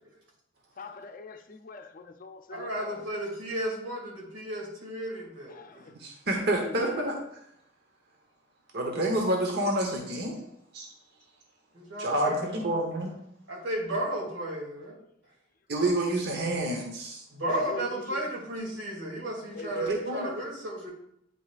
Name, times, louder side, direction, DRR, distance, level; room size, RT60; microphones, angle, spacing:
voice 1, 0.8-3.0 5.5-6.0 6.6-7.1 17.4-18.3 19.5-19.9, left 3 dB, 45° left, 0.5 m, -41 dB
voice 2, 2.5-5.9 11.7-12.6 13.5-15.0 17.3-20.9, right 1 dB, 85° right, 2.6 m, -34 dB
voice 3, 6.0-7.2 8.7-10.3 10.7-10.9 12.0-13.1 15.7-17.2 19.7-20.3, right 1 dB, 55° right, 1.1 m, -28 dB
9.3 x 5.3 x 2.5 m
head